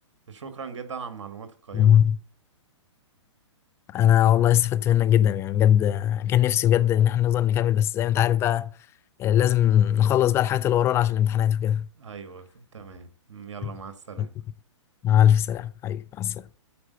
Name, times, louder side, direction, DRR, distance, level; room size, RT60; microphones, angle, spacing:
voice 1, 0.3-2.0 12.0-14.3, right 6 dB, 75° right, 1.6 m, -40 dB
voice 2, 1.7-2.2 3.9-8.7 9.2-11.9 14.2-14.3 15.0-16.4, left 11 dB, 15° left, 0.4 m, -20 dB
8.6 x 4.6 x 6.6 m
hypercardioid pair, 135°, 16 cm